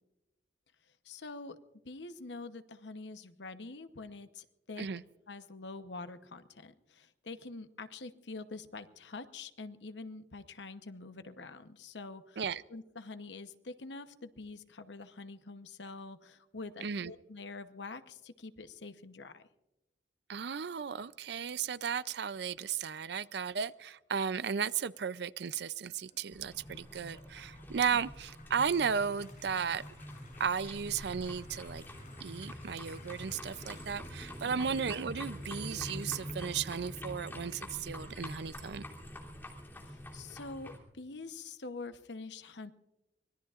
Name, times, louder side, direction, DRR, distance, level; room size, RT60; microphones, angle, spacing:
voice 1, 1.0-1.6 1.8-4.9 5.3-12.4 12.7-19.4 27.9-28.0 34.4-34.8 39.8-42.7, left 3 dB, 90° left, 1.0 m, -46 dB
voice 2, 16.8-17.1 20.3-29.8 30.4-31.8 32.2-38.8, right 6 dB, 65° right, 0.5 m, -35 dB
sound 1, 25.9-36.9, left 4 dB, 50° left, 6.0 m, -60 dB
sound 2, 26.3-40.8, left 1 dB, 15° left, 3.0 m, -45 dB
25.0 x 20.5 x 2.5 m
head